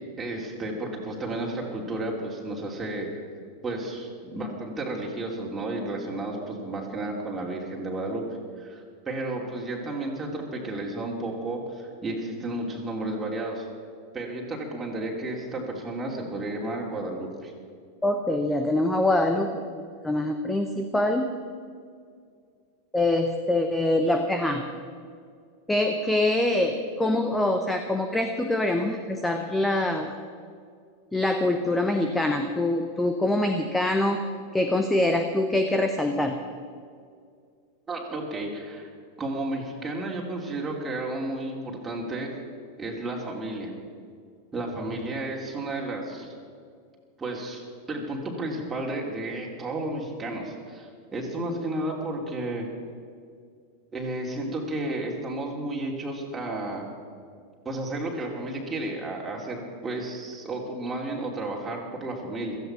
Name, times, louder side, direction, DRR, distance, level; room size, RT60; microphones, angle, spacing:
voice 1, 0.2-3.3 3.6-8.2 8.6-13.7 14.1-17.5 37.9-38.9 39.2-42.3 42.8-43.7 44.5-46.3 47.2-52.7 53.9-56.9 57.6-62.6, right 2 dB, 15° right, -2 dB, 2.9 m, -32 dB
voice 2, 18.0-19.6 20.0-21.3 22.9-24.6 25.7-30.1 31.1-34.2 34.5-36.4, left 1 dB, 5° left, 6 dB, 1.0 m, -24 dB
16.0 x 14.0 x 5.8 m, 2.2 s
figure-of-eight pair, 90°, 0 cm